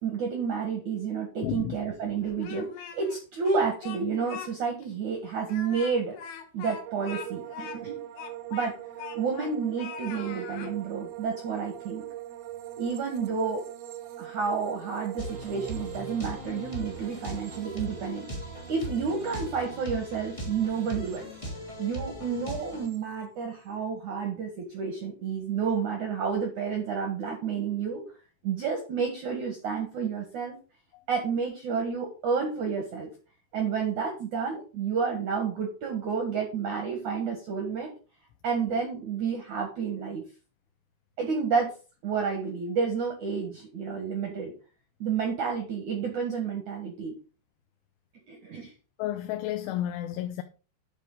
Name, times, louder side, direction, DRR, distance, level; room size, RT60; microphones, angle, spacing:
voice 1, 0.0-2.7 2.9-6.1 6.5-8.0 8.5-8.8 9.2-12.0 12.8-13.6 14.2-18.3 18.7-21.3 21.8-28.1 28.4-30.6 31.1-33.1 33.5-37.9 38.4-40.2 41.2-41.7 42.0-44.5 45.0-47.1 48.3-48.7, right 5 dB, 60° right, 2.1 m, -30 dB
voice 2, 1.4-1.8 30.9-31.0 49.0-50.4, left 13 dB, 80° left, 3.1 m, -31 dB
Speech, 2.2-3.2 3.5-4.5 4.8-4.9 5.4-9.5 9.8-10.7, left 8 dB, 65° left, 2.7 m, -41 dB
sound 1, 6.8-22.1 22.3-23.0, right 13 dB, 80° right, 2.3 m, -43 dB
sound 2, 15.2-22.9, equal, 10° left, 1.4 m, -39 dB
10.5 x 6.7 x 3.8 m
omnidirectional pair, 5.6 m